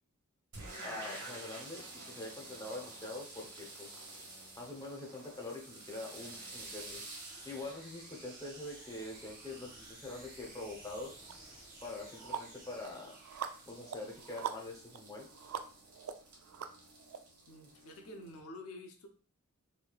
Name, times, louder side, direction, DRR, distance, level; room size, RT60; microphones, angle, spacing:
sound 1, 0.5-18.4, right 2 dB, 90° right, 1.1 m, -51 dB
voice 1, 0.8-3.9 4.6-7.0 7.4-11.1 11.8-13.1 13.7-15.3, left 2 dB, 15° left, -1 dB, 0.7 m, -44 dB
sound 2, 1.8-15.0, right 1 dB, 40° right, 1.3 m, -58 dB
sound 3, 11.3-11.4 11.8-17.2, right 8 dB, 70° right, 0.3 m, -44 dB
voice 2, 17.5-19.1, left 1 dB, 70° left, 4 dB, 0.6 m, -49 dB
3.0 x 2.7 x 2.3 m, 0.42 s
head